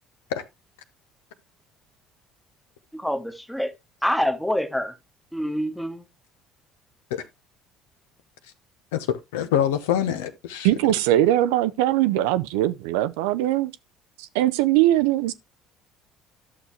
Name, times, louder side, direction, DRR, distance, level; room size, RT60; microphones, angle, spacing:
voice 1, 2.9-3.7 4.0-4.9 5.3-6.1, equal, 5° left, 1.2 m, -26 dB
voice 2, 8.9-10.7, left 10 dB, 70° left, 0.7 m, -25 dB
voice 3, 10.6-13.7 14.2-15.3, right 14 dB, 65° right, 0.4 m, -21 dB
11.5 x 6.6 x 2.9 m
figure-of-eight pair, 55°, 0 cm